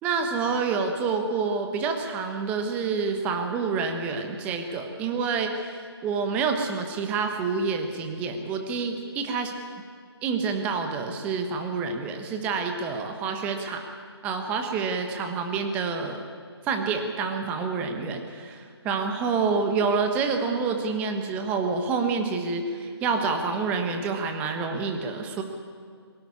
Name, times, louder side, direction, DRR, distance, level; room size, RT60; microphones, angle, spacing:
voice 1, 0.0-9.5 10.2-13.8 14.2-16.2 16.6-25.4, right 5 dB, 10° right, 5 dB, 1.2 m, -28 dB
23.0 x 13.0 x 9.9 m, 2.1 s
figure-of-eight pair, 160°, 14 cm